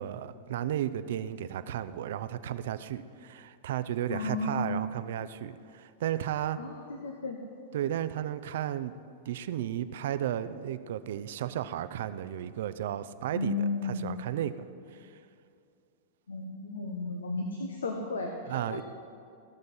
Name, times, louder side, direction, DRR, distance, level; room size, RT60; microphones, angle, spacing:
voice 1, 0.0-6.6 7.7-8.9 9.3-13.6 13.8-14.7 14.9-15.1 18.5-18.8, right 11 dB, 65° right, 12 dB, 0.5 m, -34 dB
voice 2, 4.1-4.9 6.6-7.4 13.3-14.2 16.3-18.8, left 3 dB, 85° left, 3 dB, 1.0 m, -34 dB
15.0 x 6.4 x 5.4 m, 2.5 s
hypercardioid pair, 105°, 0 cm